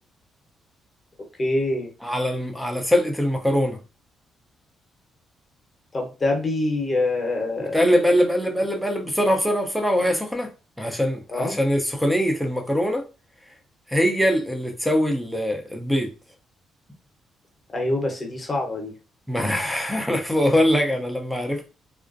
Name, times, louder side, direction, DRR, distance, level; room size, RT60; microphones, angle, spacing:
voice 1, 1.4-1.9 5.9-7.9 11.3-11.6 17.7-18.9, left 2 dB, 30° left, 0.9 m, -25 dB
voice 2, 2.0-3.8 7.6-10.5 10.8-13.0 13.9-16.1 19.3-21.7, equal, ahead, 0.6 m, -22 dB
2.4 x 2.1 x 2.5 m
cardioid pair, 90°, 0 cm